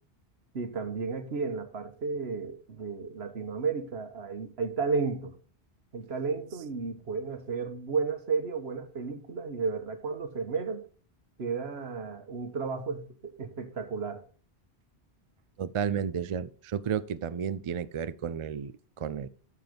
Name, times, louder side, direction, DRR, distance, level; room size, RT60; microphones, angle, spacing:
voice 1, 0.5-5.4 5.9-10.9 11.4-13.1 13.4-14.2, right 4 dB, 75° right, 1.5 m, -33 dB
voice 2, 15.6-19.3, right 7 dB, 55° right, 0.3 m, -32 dB
13.0 x 4.6 x 5.2 m
omnidirectional pair, 1.1 m